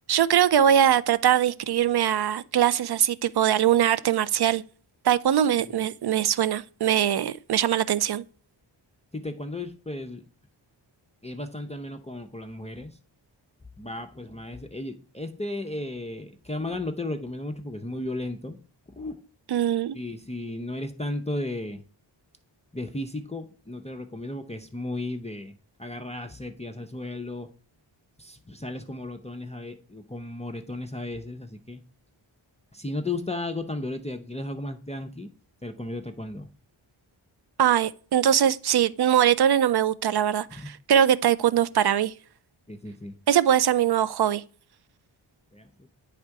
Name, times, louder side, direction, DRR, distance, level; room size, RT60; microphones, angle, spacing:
voice 1, 0.1-4.6 5.0-8.2 19.5-20.0 37.6-42.1 43.3-44.4, right 10 dB, 55° right, 0.5 m, -22 dB
voice 2, 9.1-10.2 11.2-13.0 13.8-18.6 19.0-19.2 19.9-21.8 22.7-27.5 28.2-31.8 32.7-35.3 35.6-36.5 40.5-40.7 42.7-43.2 45.5-45.9, left 2 dB, 15° left, 0.5 m, -35 dB
8.6 x 3.6 x 4.6 m
cardioid pair, 60°, 47 cm